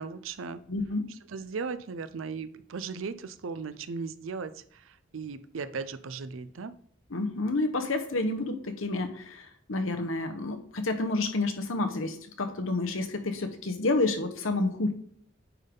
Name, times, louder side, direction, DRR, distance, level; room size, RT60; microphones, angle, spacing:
voice 1, 0.0-0.6 1.3-6.7, right 5 dB, 80° right, 13 dB, 0.5 m, -37 dB
voice 2, 0.7-1.1 7.1-14.9, left 2 dB, 85° left, 6 dB, 1.0 m, -29 dB
9.2 x 3.6 x 3.8 m, 0.65 s
head